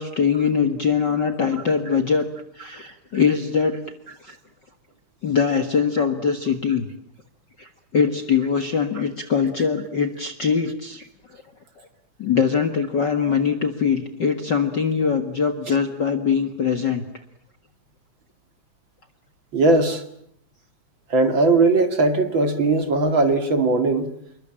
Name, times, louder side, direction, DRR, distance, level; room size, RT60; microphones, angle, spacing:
voice 1, 0.0-2.3 2.5-3.8 4.2-4.3 5.2-6.9 7.6-11.0 11.3-11.4 11.8-11.9 12.2-17.0, left 6 dB, 40° left, 7 dB, 1.8 m, -22 dB
voice 2, 19.5-20.0 21.1-24.1, right 3 dB, 40° right, 8 dB, 2.7 m, -19 dB
28.0 x 23.0 x 8.9 m, 0.69 s
omnidirectional pair, 3.6 m